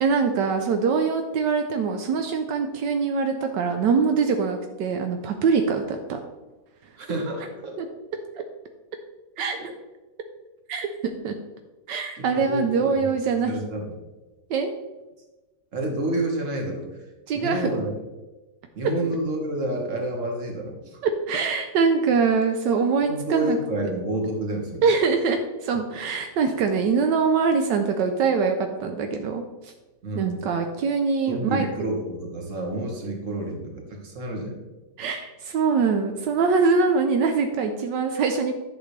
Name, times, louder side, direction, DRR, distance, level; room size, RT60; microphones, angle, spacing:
voice 1, 0.0-6.2 7.8-7.9 9.4-9.7 10.7-11.3 11.9-13.6 14.5-14.7 17.3-17.7 21.0-23.6 24.8-29.7 30.1-31.7 35.0-38.6, right 5 dB, 80° right, 5 dB, 1.3 m, -23 dB
voice 2, 7.0-7.7 9.6-9.7 12.3-13.1 13.5-13.9 15.7-16.8 17.3-18.0 18.7-21.0 23.1-24.8 30.0-30.4 31.3-34.6, right 1 dB, 45° right, 2 dB, 1.8 m, -29 dB
11.0 x 6.7 x 3.2 m, 1.1 s
omnidirectional pair, 1.9 m